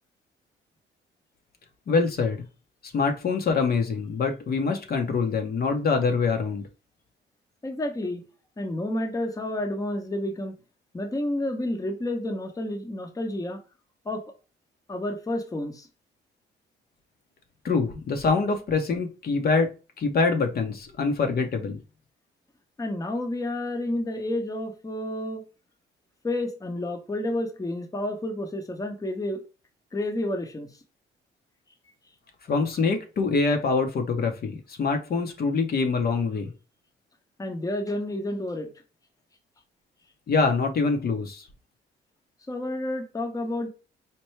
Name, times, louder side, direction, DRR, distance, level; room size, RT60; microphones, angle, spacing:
voice 1, 1.9-2.4 2.8-6.6 17.6-21.8 32.5-36.5 40.3-41.4, left 4 dB, 50° left, 0.8 m, -25 dB
voice 2, 7.6-8.2 8.6-10.6 10.9-13.6 14.1-14.2 14.9-15.9 22.8-25.4 26.2-29.4 29.9-30.7 37.4-38.7 42.5-43.7, left 1 dB, 15° left, 0.8 m, -30 dB
4.4 x 2.2 x 3.1 m
cardioid pair, 90°, 20 cm